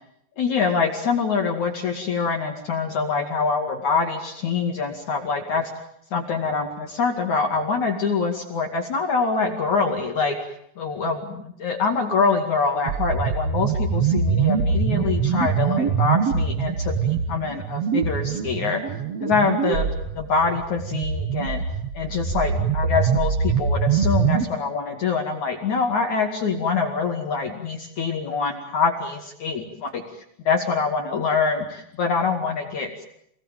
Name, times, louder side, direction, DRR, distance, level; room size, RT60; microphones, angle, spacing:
voice 1, 0.4-5.7 6.1-10.4 10.8-18.8 19.2-21.6 21.9-30.0 30.4-33.0, left 5 dB, 50° left, 3 dB, 3.2 m, -25 dB
sound 1, 12.9-24.5, right 6 dB, 70° right, 1.5 m, -24 dB
29.0 x 19.0 x 9.2 m, 0.74 s
omnidirectional pair, 5.0 m